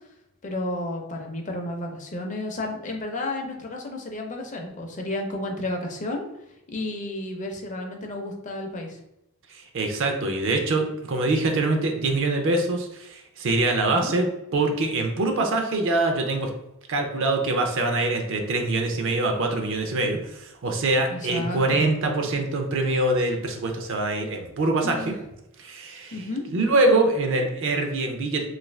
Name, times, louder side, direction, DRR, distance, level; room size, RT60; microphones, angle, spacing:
voice 1, 0.4-6.3 6.7-9.0 13.8-14.1 21.1-21.9 24.8-25.2 26.1-26.4, left 1 dB, 35° left, 2 dB, 0.5 m, -32 dB
voice 2, 9.5-14.3 14.5-16.5 16.9-25.1 25.6-26.2 26.5-28.4, right 2 dB, 60° right, 3 dB, 0.5 m, -24 dB
2.6 x 2.5 x 3.2 m, 0.87 s
head